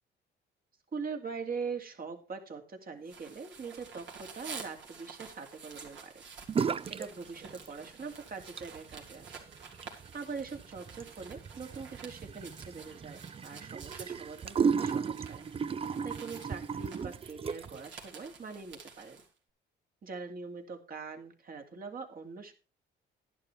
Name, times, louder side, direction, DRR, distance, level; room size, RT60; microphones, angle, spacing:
voice 1, 0.9-6.2 6.9-9.4 10.1-15.4 16.0-19.2 20.0-22.5, right 5 dB, 50° right, 4 dB, 2.5 m, -42 dB
sound 1, 3.0-19.3, right 5 dB, 70° right, 3.4 m, -50 dB
sound 2, 6.5-7.1 7.4-8.0 8.4-17.9, right 6 dB, 30° right, 0.4 m, -35 dB
11.5 x 11.0 x 3.4 m, 0.32 s
cardioid pair, 90°, 20 cm